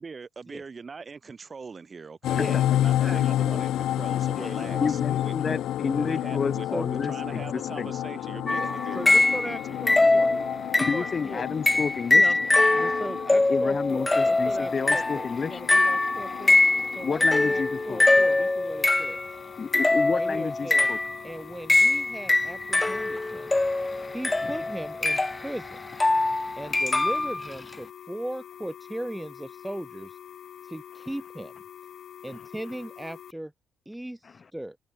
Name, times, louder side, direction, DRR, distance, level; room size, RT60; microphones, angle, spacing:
voice 1, 0.0-5.6 6.0-9.9, right 5 dB, 35° right, 4.8 m, -42 dB
sound 1, 2.2-18.5, left 12 dB, 80° left, 1.0 m, -30 dB
voice 2, 2.3-3.6 4.3-5.6 5.9-6.1 6.7-6.9 8.5-10.3 10.8-11.6 12.1-12.4 12.7-16.6 16.9-19.2 20.1-20.9 21.2-23.6 24.1-25.8 26.6-30.2 30.6-31.5 32.2-33.5 33.9-34.8, right 1 dB, 5° right, 2.0 m, -38 dB
voice 3, 4.8-7.9 10.8-12.3 13.5-15.6 17.0-18.0 19.6-21.0 24.4-24.5 26.6-26.7 34.2-34.3, left 5 dB, 40° left, 1.6 m, -30 dB
sound 2, 8.5-9.6 9.9-11.2 11.7-19.3 19.7-21.2 21.7-27.5, left 2 dB, 15° left, 1.8 m, -23 dB
sound 3, 13.9-33.3, left 9 dB, 65° left, 3.6 m, -45 dB
cardioid pair, 90°, 0 cm